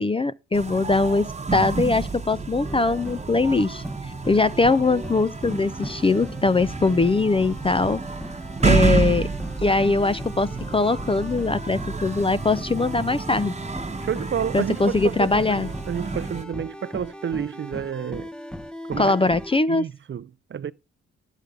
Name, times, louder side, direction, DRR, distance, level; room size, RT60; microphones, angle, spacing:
voice 1, 0.0-3.8 4.3-8.0 8.6-9.3 9.6-13.5 14.5-15.7 19.0-19.8, left 3 dB, 20° left, 0.4 m, -21 dB
sound 1, 0.5-16.4, right 4 dB, 20° right, 1.1 m, -29 dB
sound 2, 2.6-19.6, equal, 5° left, 0.8 m, -38 dB
voice 2, 14.0-18.3 18.9-19.2 19.7-20.7, right 8 dB, 40° right, 0.5 m, -30 dB
11.5 x 8.1 x 3.7 m
supercardioid pair, 60°, 31 cm